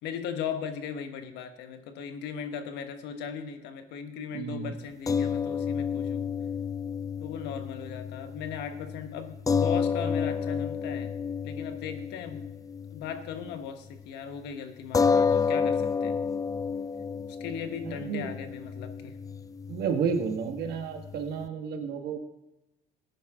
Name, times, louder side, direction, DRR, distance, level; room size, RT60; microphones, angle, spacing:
voice 1, 0.0-6.2 7.2-11.1 11.4-12.5 12.9-16.2 17.4-19.2, left 7 dB, 85° left, 8 dB, 1.3 m, -38 dB
voice 2, 4.3-4.7 17.8-18.3 19.7-22.2, right 6 dB, 70° right, 4 dB, 1.8 m, -31 dB
sound 1, 5.1-13.6 13.9-14.1 14.9-21.5, left 6 dB, 20° left, 0.4 m, -30 dB
15.0 x 10.5 x 3.7 m, 0.99 s
cardioid pair, 110°, 17 cm